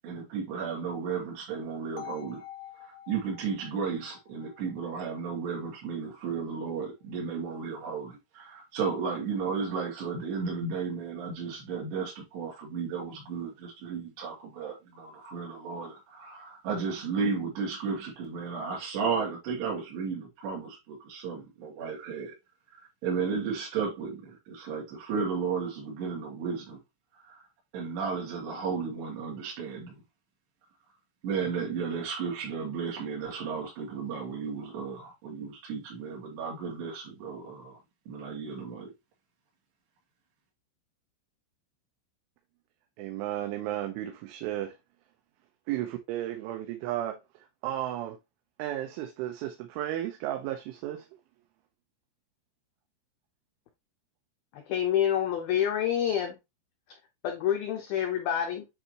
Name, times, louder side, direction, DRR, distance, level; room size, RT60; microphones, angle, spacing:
voice 1, 0.0-2.4 2.7-22.3 23.0-26.8 27.1-27.4 27.7-30.0 31.2-37.8 38.1-38.9, right 5 dB, 60° right, 4.5 m, -34 dB
sound 1, 2.0-5.9, left 11 dB, 70° left, 1.9 m, -48 dB
voice 2, 43.0-44.7 45.7-47.2 47.6-48.2 48.6-51.0, right 13 dB, 80° right, 3.2 m, -33 dB
voice 3, 54.5-56.4 57.2-58.7, left 10 dB, 85° left, 2.1 m, -27 dB
9.7 x 3.7 x 3.0 m
omnidirectional pair, 5.6 m